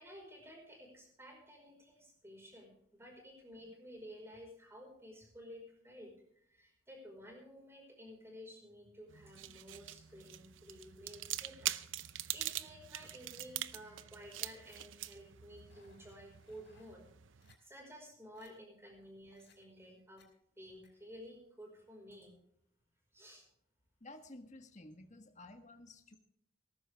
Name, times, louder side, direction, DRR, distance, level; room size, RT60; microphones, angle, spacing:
voice 1, 0.0-17.0 17.3-20.3 20.6-22.3 23.1-23.4, equal, 15° right, 1 dB, 5.1 m, -53 dB
sound 1, 9.1-17.6, right 13 dB, 85° right, 0.7 m, -44 dB
sound 2, 15.7-16.9 17.4-17.6 18.0-18.1 18.3-18.5 19.3-19.6 20.2-20.3 20.8-20.9, left 5 dB, 60° left, 5.0 m, -68 dB
voice 2, 24.0-26.2, left 2 dB, 40° left, 7 dB, 1.5 m, -53 dB
18.0 x 14.5 x 3.5 m, 0.70 s
head